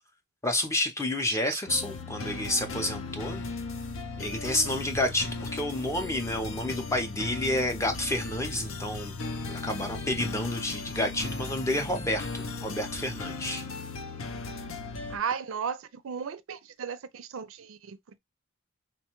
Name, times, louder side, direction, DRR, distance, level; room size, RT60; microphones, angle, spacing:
voice 1, 0.4-3.4 4.2-9.1 9.5-13.7, left 1 dB, 15° left, 0.5 m, -30 dB
sound 1, 1.7-15.2, left 3 dB, 75° left, 0.6 m, -37 dB
voice 2, 15.1-18.0, right 7 dB, 80° right, 0.4 m, -35 dB
4.1 x 2.2 x 2.9 m
head